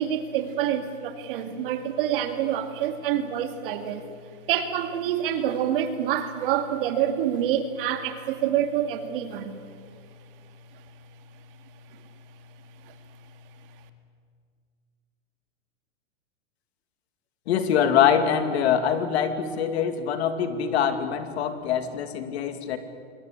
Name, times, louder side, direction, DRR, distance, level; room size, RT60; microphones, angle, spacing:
voice 1, 0.0-4.1 4.5-9.5 12.8-12.9, right 10 dB, 45° right, 7 dB, 2.3 m, -27 dB
voice 2, 17.5-22.8, left 8 dB, 55° left, 8 dB, 2.6 m, -24 dB
27.0 x 21.5 x 8.8 m, 2.1 s
supercardioid pair, 165°, 38 cm